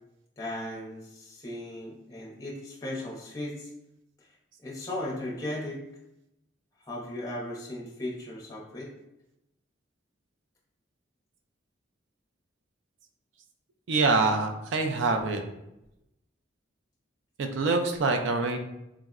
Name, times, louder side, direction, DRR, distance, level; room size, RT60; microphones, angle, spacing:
voice 1, 0.4-3.7 4.6-5.8 6.9-8.9, left 1 dB, 15° left, -4 dB, 0.6 m, -36 dB
voice 2, 13.9-15.4 17.4-18.6, right 3 dB, 70° right, 5 dB, 0.4 m, -25 dB
3.5 x 2.0 x 2.3 m, 0.88 s
head